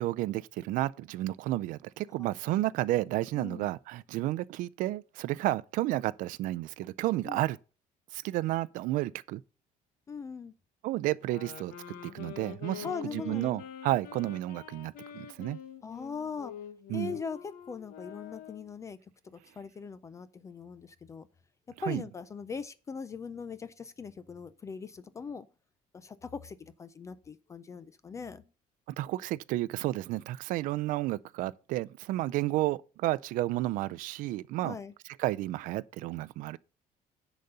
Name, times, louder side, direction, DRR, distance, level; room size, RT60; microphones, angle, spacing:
voice 1, 0.0-7.6 8.1-9.4 10.8-11.7 12.0-15.6 16.9-17.1 21.9-22.0 28.9-34.8 35.2-36.6, right 16 dB, 65° right, 0.4 m, -31 dB
voice 2, 2.2-2.7 3.3-3.7 7.2-7.4 10.1-10.5 12.8-13.6 15.8-16.5 16.9-19.0 19.2-21.3 21.8-25.5 25.9-28.4 34.6-34.9, left 5 dB, 20° left, 0.4 m, -40 dB
sound 1, 11.2-18.8, left 9 dB, 75° left, 1.3 m, -46 dB
10.5 x 4.1 x 6.7 m
cardioid pair, 175°, 15 cm